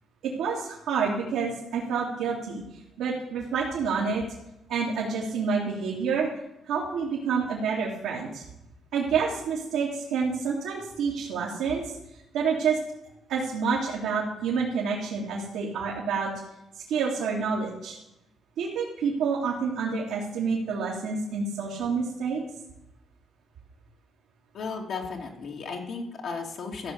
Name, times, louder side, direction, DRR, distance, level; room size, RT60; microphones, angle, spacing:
voice 1, 0.2-2.6 3.0-4.2 4.7-6.3 6.6-8.4 8.9-11.9 12.3-12.8 13.3-16.3 16.7-18.0 18.6-22.4, right 5 dB, 90° right, -5 dB, 2.5 m, -28 dB
voice 2, 24.5-26.9, left 4 dB, 65° left, 1 dB, 2.4 m, -35 dB
14.5 x 5.7 x 8.1 m, 0.87 s
cardioid pair, 90°, 0 cm